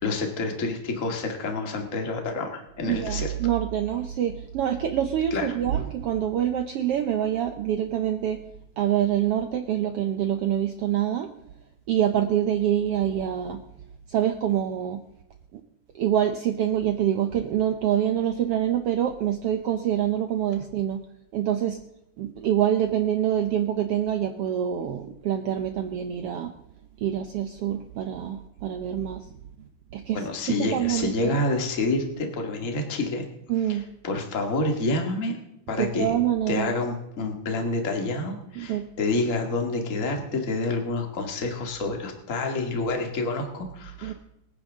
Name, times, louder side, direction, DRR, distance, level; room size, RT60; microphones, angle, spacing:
voice 1, 0.0-3.3 5.3-5.6 30.1-33.2 33.7-33.8 34.0-35.4 35.7-36.1 36.5-44.1, left 2 dB, 30° left, 2 dB, 1.9 m, -28 dB
voice 2, 2.9-8.4 8.8-11.3 11.9-13.6 14.1-15.0 15.5-15.6 16.0-21.0 21.3-21.8 22.2-26.5 27.0-29.3 29.9-30.2 30.6-31.4 33.5-33.8 35.8-36.7 38.6-38.8 44.0-44.1, right 10 dB, 85° right, 6 dB, 1.3 m, -26 dB
25.0 x 9.8 x 3.7 m, 0.88 s
omnidirectional pair, 3.8 m